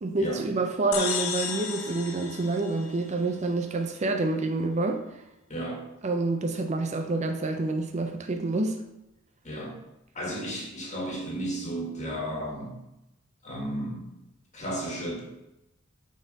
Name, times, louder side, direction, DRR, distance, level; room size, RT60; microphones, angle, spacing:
voice 1, 0.0-5.2 6.0-8.8, right 3 dB, 35° right, 0.5 m, -28 dB
sound 1, 0.9-3.5, left 7 dB, 70° left, 0.8 m, -34 dB
voice 2, 5.5-5.8 9.4-9.8 10.1-12.8 13.4-14.1 14.5-15.2, right 1 dB, 35° left, 1.7 m, -33 dB
6.2 x 4.3 x 5.3 m
head